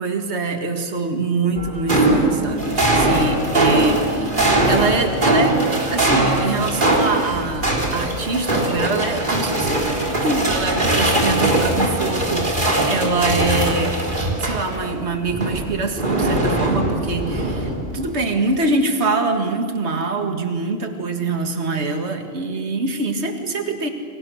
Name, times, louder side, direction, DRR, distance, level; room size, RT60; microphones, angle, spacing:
voice 1, 0.0-4.4 4.7-5.6 5.9-9.8 10.2-14.0 14.4-23.9, right 3 dB, 60° right, 5 dB, 2.2 m, -24 dB
sound 1, 1.6-14.9 15.3-18.0, right 1 dB, 40° right, 3.9 m, -20 dB
28.5 x 26.0 x 6.5 m, 2.2 s
omnidirectional pair, 1.3 m